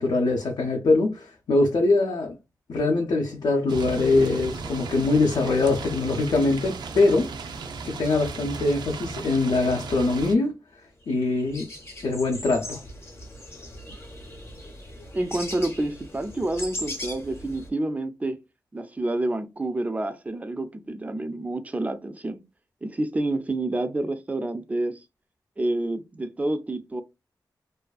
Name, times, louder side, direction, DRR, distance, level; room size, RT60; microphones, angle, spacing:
voice 1, 0.0-2.3 2.7-7.3 7.8-10.5 11.1-11.7 12.0-12.8, left 3 dB, 75° left, 0.5 m, -23 dB
sound 1, 3.7-10.4, right 4 dB, 85° right, 0.4 m, -36 dB
sound 2, 11.1-11.2 11.4-17.7, left 1 dB, 35° left, 0.7 m, -39 dB
voice 2, 15.1-18.4 18.7-22.4 22.8-25.0 25.6-27.0, right 2 dB, 20° right, 0.3 m, -28 dB
2.4 x 2.3 x 2.3 m
wide cardioid pair, 110°, 7 cm